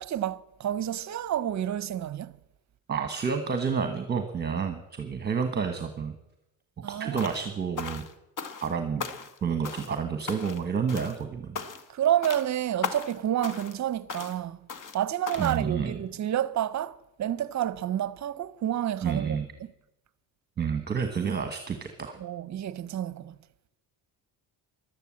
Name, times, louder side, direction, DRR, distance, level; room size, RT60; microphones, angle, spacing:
voice 1, 0.0-2.4 6.8-7.2 11.9-14.6 14.9-19.4 22.2-23.3, right 11 dB, 45° right, 0.7 m, -29 dB
voice 2, 2.9-6.1 6.8-8.0 8.6-9.0 9.4-11.6 15.3-16.0 19.0-19.5 20.6-22.2, right 6 dB, 25° right, 1.2 m, -29 dB
sound 1, 7.2-7.5 7.8-8.7 9.0-9.4 9.6-10.0 10.3-10.6 10.9-11.2 11.5-11.9 12.2-12.5 12.8-13.2 13.4-13.8 14.1-14.4 14.7-15.0 15.3-15.6, left 6 dB, 50° left, 1.5 m, -37 dB
13.5 x 12.0 x 7.6 m
cardioid pair, 120°, 41 cm